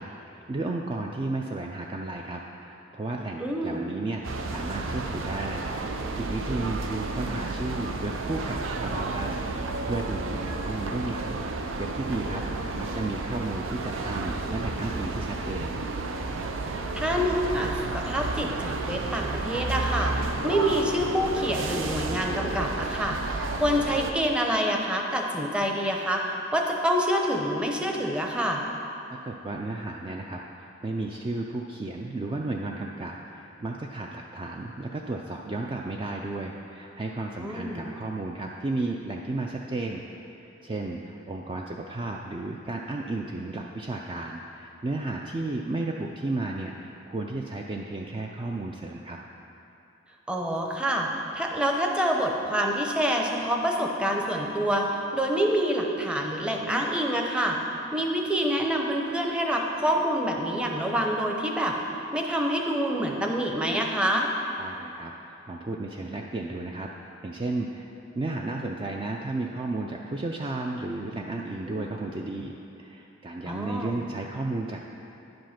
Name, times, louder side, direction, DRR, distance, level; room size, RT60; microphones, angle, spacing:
voice 1, 0.0-15.8 29.2-40.0 40.3-40.4 40.6-49.2 64.6-66.9 67.2-74.9, right 2 dB, 25° right, 0 dB, 0.4 m, -33 dB
voice 2, 3.4-3.9 12.2-12.5 16.9-28.6 37.4-37.9 50.3-57.6 57.9-61.8 62.1-64.3 71.7-71.9 73.5-73.9, equal, 5° right, 0 dB, 0.7 m, -27 dB
sound 1, 4.2-24.1, right 3 dB, 85° right, 0.6 m, -32 dB
10.0 x 5.3 x 5.8 m, 2.9 s
head